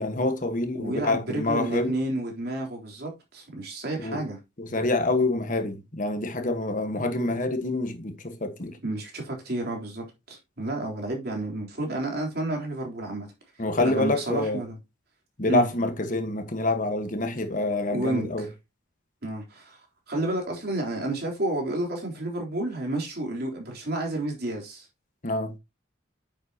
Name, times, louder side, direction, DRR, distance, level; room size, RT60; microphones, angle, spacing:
voice 1, 0.0-1.9 4.0-4.2 4.6-8.8 13.6-14.6 15.4-18.5 25.2-25.5, left 2 dB, 45° left, 1.4 m, -27 dB
voice 2, 0.8-4.4 8.8-13.3 13.8-14.8 15.4-15.7 17.9-18.5 19.2-19.8 20.1-24.9, right 1 dB, 55° right, 3.8 m, -30 dB
9.5 x 7.5 x 2.9 m
head